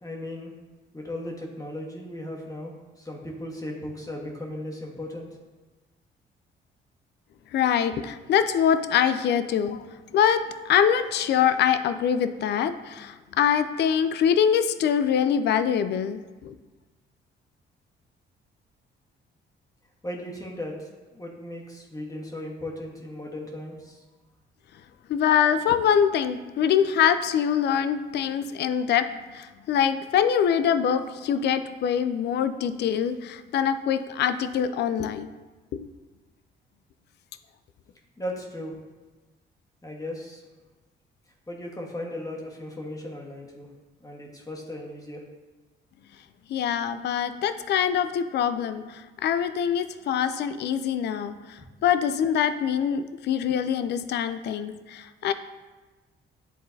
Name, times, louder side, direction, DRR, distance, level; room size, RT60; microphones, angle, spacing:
voice 1, 0.0-0.5 0.9-2.7 3.0-5.3 20.0-20.7 21.1-24.0 38.2-38.8 39.8-40.4 41.5-43.7 44.0-45.2, left 1 dB, 15° left, -1 dB, 1.3 m, -36 dB
voice 2, 7.5-9.8 10.1-16.5 25.1-29.1 29.3-35.3 35.7-35.9 46.5-48.8 49.2-51.4 51.8-55.3, left 8 dB, 60° left, 12 dB, 0.4 m, -24 dB
11.0 x 3.8 x 2.7 m, 1.2 s
cardioid pair, 90°, 20 cm